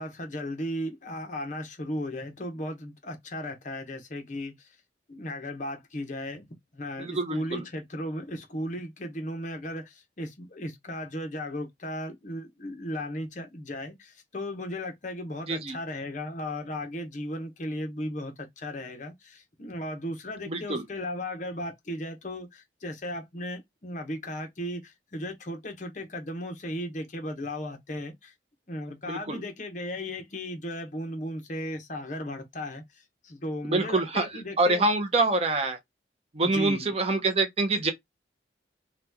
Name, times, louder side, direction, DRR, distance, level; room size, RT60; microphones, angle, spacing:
voice 1, 0.0-4.7 5.1-6.5 6.7-28.3 28.7-34.9 36.4-36.9, left 1 dB, 40° left, 0.7 m, -36 dB
voice 2, 7.0-7.6 15.5-15.8 20.5-20.8 29.1-29.4 33.7-34.3 34.6-35.8 36.3-37.9, right 2 dB, 35° right, 0.5 m, -26 dB
2.9 x 2.2 x 3.4 m
head